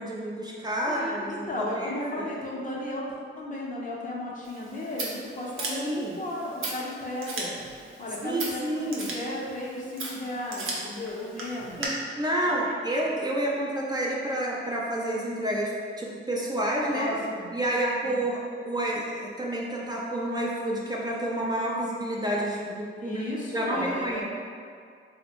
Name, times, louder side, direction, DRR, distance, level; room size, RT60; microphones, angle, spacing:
voice 1, 0.0-2.3 5.7-6.2 8.2-9.1 11.8-17.1 17.5-18.4 18.6-23.2 23.5-24.2, right 1 dB, 20° right, -4 dB, 0.4 m, -29 dB
voice 2, 0.9-3.1 3.4-7.5 8.0-11.9 12.6-12.7 16.9-17.5 18.0-18.1 23.0-24.2, left 1 dB, 40° left, -4 dB, 0.6 m, -34 dB
Scissors, 4.4-11.9, right 2 dB, 80° right, 0.6 m, -38 dB
3.4 x 2.1 x 2.9 m, 2.2 s
cardioid pair, 100°, 21 cm